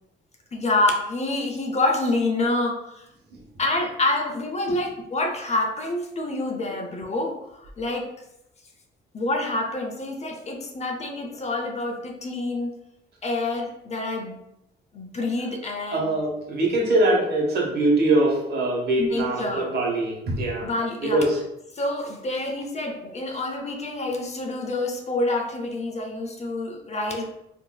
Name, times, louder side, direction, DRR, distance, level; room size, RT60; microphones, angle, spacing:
voice 1, 0.5-3.0 3.6-8.1 9.1-12.7 13.2-14.4 14.9-16.1 19.0-19.7 20.6-21.2 21.8-27.2, left 2 dB, 35° left, 3 dB, 0.6 m, -27 dB
voice 2, 15.9-20.7 21.0-21.4, right 2 dB, 55° right, -2 dB, 1.1 m, -22 dB
3.7 x 2.7 x 2.2 m, 0.83 s
cardioid pair, 90°, 20 cm